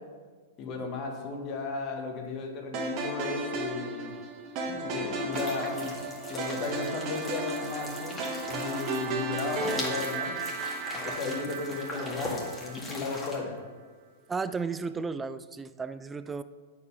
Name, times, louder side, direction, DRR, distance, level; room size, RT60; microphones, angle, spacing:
voice 1, 0.6-4.1 4.6-5.9 6.3-10.3 10.9-13.6, left 4 dB, 35° left, 1 dB, 1.5 m, -35 dB
sound 1, 2.7-13.0, right 3 dB, 45° right, 1.4 m, -34 dB
sound 2, 5.3-13.4, left 2 dB, 20° left, 1.9 m, -40 dB
voice 2, 14.3-16.4, right 4 dB, 15° right, 13 dB, 0.4 m, -34 dB
8.1 x 4.8 x 5.5 m, 1.5 s
hypercardioid pair, 120°, 0 cm